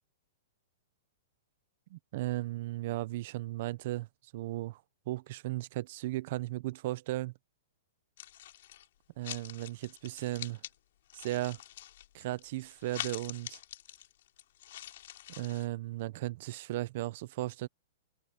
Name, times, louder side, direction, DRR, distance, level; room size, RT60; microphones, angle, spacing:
voice 1, 1.9-4.1 4.3-7.3 9.2-10.6 11.1-11.6 12.1-13.6 15.3-17.7, right 16 dB, 50° right, 0.8 m, -36 dB
sound 1, 8.2-8.9 9.2-10.8 11.1-15.7, left 13 dB, 60° left, 6.6 m, -45 dB
open air
hypercardioid pair, 150°, 0 cm